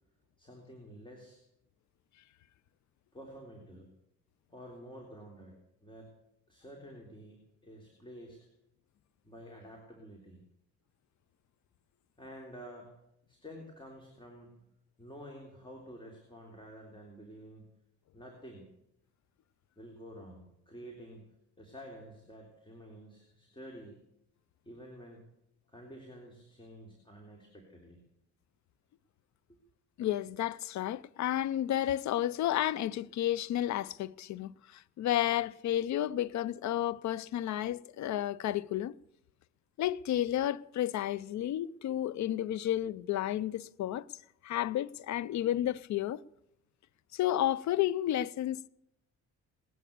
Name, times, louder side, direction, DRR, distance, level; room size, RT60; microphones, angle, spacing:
voice 1, 0.4-1.4 3.1-3.9 4.5-6.1 6.5-8.4 9.2-10.4 12.2-12.9 13.3-14.6 15.0-17.7 18.1-18.7 19.8-21.3 21.6-24.0 24.7-25.2 25.7-28.0 29.5-29.6, equal, 15° left, 3.5 m, -50 dB
voice 2, 30.0-39.0 39.8-44.0 44.4-46.2 47.1-48.7, left 12 dB, 70° left, 0.6 m, -32 dB
19.0 x 11.0 x 6.8 m
cardioid pair, 90°, 30 cm